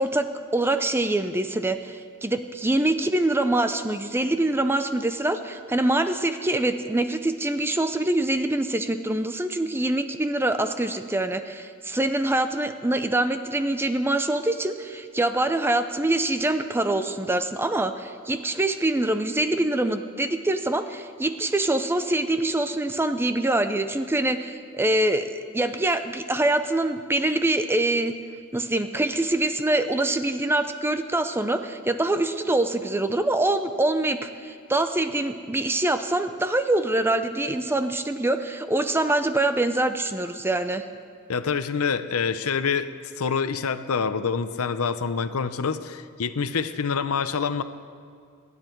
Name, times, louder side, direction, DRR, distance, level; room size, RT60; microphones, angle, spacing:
voice 1, 0.0-28.2 28.5-40.8, right 2 dB, 10° right, 9 dB, 0.5 m, -24 dB
voice 2, 41.3-42.9 43.2-47.6, left 5 dB, 70° left, 11 dB, 0.7 m, -26 dB
26.5 x 9.9 x 4.5 m, 2.2 s
head